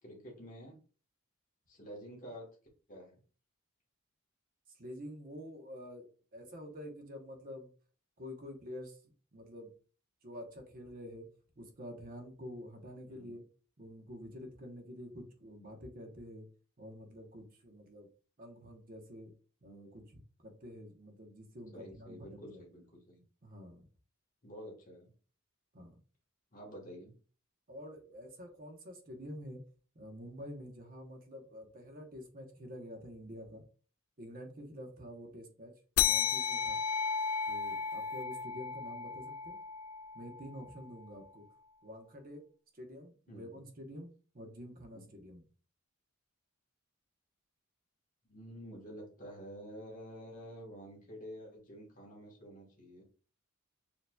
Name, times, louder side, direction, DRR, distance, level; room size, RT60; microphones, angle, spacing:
voice 1, 0.0-0.7 1.7-2.5 2.9-3.2 13.0-13.4 21.7-23.2 24.4-25.1 26.5-27.1 43.3-43.7 44.9-45.0 48.3-53.0, equal, 40° left, -1 dB, 1.2 m, -49 dB
voice 2, 4.7-7.7 8.2-9.0 9.3-9.7 10.2-11.3 11.6-13.4 13.8-16.5 16.8-18.1 18.4-19.3 19.6-22.6 23.4-23.8 25.7-26.0 27.7-29.6 29.9-33.6 34.2-35.7 36.0-36.8 37.5-39.6 40.1-41.4 41.8-42.4 42.7-44.1 44.3-45.4, equal, 40° right, 4 dB, 1.0 m, -48 dB
sound 1, 36.0-40.9, left 7 dB, 75° left, 0.4 m, -34 dB
6.7 x 2.9 x 2.3 m, 0.38 s
head